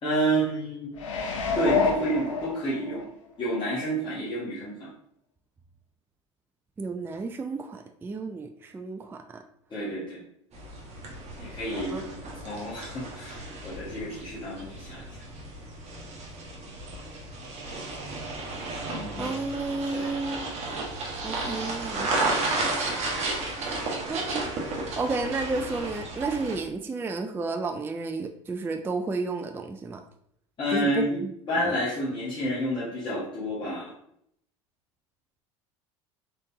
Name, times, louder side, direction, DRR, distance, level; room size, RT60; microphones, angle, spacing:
voice 1, 0.0-0.9 1.5-3.0 3.4-4.9 9.7-10.2 11.4-12.1 12.4-15.0 18.9-19.3 19.9-20.1 21.9-22.3 30.6-31.2 31.5-33.9, right 1 dB, 30° left, -9 dB, 1.6 m, -29 dB
sound 1, 1.0-3.0 3.5-3.6, left 5 dB, 85° left, 0.6 m, -27 dB
voice 2, 6.8-9.4 11.9-12.0 19.2-20.5 21.2-22.3 22.9-23.0 23.7-23.8 24.1-30.0 30.7-31.7, right 3 dB, 15° right, 6 dB, 0.3 m, -32 dB
sound 2, 10.5-26.6, right 2 dB, 45° right, 1.2 m, -33 dB
4.0 x 3.4 x 2.7 m, 0.71 s
hypercardioid pair, 80°, 16 cm